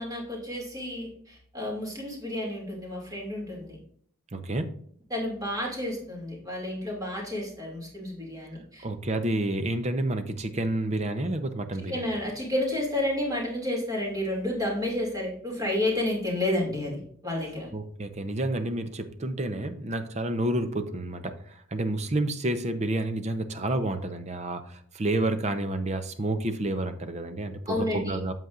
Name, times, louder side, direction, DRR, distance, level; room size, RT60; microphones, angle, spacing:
voice 1, 0.0-3.8 5.1-8.9 11.8-17.7 27.7-28.2, left 1 dB, 15° right, -2 dB, 2.5 m, -31 dB
voice 2, 4.3-4.7 8.8-12.1 17.7-28.3, right 1 dB, 35° right, 9 dB, 0.7 m, -29 dB
8.2 x 7.5 x 2.5 m, 0.63 s
head